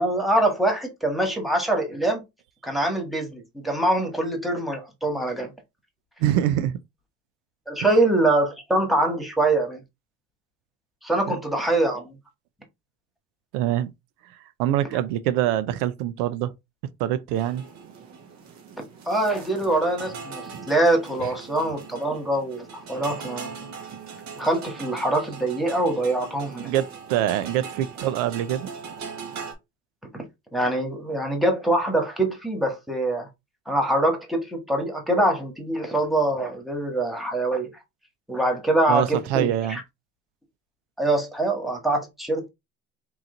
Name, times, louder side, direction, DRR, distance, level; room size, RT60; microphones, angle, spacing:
voice 1, 0.0-2.2 2.6-5.5 7.7-9.8 11.0-12.2 19.0-23.5 24.4-26.7 30.1-30.2 30.5-33.3 33.6-37.7 38.3-39.8 41.0-42.5, right 1 dB, ahead, 1.5 m, -24 dB
voice 2, 6.2-6.8 11.3-11.4 13.5-13.9 14.6-16.5 17.0-17.6 26.6-28.7 38.9-39.8, right 12 dB, 85° right, 0.6 m, -24 dB
sound 1, 17.3-29.5, right 5 dB, 55° right, 1.5 m, -40 dB
3.8 x 3.0 x 3.8 m
supercardioid pair, 105°, 33 cm